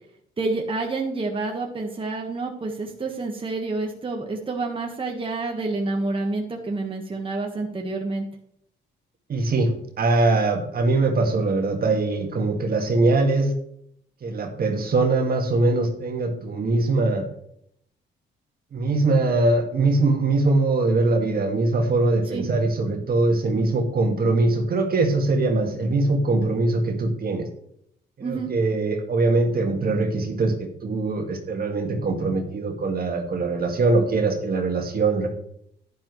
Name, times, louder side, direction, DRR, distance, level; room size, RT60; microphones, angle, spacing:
voice 1, 0.4-8.2 22.3-22.4 28.2-28.5, right 3 dB, 25° right, 1 dB, 1.5 m, -28 dB
voice 2, 9.3-13.5 14.2-17.3 18.7-27.5 28.2-35.3, right 2 dB, 50° right, 4 dB, 2.0 m, -22 dB
10.5 x 10.5 x 3.2 m, 0.72 s
cardioid pair, 90°, 20 cm